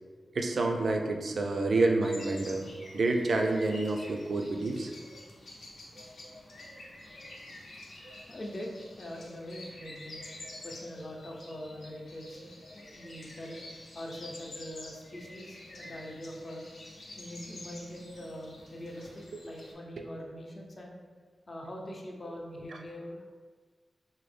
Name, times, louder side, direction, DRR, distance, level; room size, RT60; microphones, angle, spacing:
voice 1, 0.3-2.7 2.9-4.9 20.0-20.1, right 2 dB, 70° right, 3 dB, 0.4 m, -28 dB
sound 1, 2.0-19.7, left 1 dB, 75° left, 0.7 m, -48 dB
voice 2, 8.1-10.2 10.6-13.6 13.9-16.7 17.2-21.0 21.5-23.4, equal, 40° left, -1 dB, 0.6 m, -43 dB
3.9 x 2.0 x 3.2 m, 1.5 s
wide cardioid pair, 85°, 0 cm